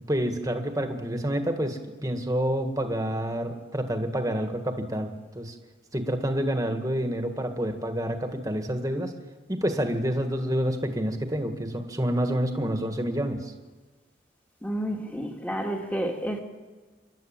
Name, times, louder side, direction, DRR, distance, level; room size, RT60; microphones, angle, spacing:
voice 1, 0.1-5.5 5.9-9.1 9.5-13.5, equal, 20° right, 5 dB, 1.8 m, -28 dB
voice 2, 14.6-16.4, right 1 dB, 10° left, 2 dB, 2.1 m, -30 dB
27.5 x 12.0 x 8.9 m, 1.3 s
head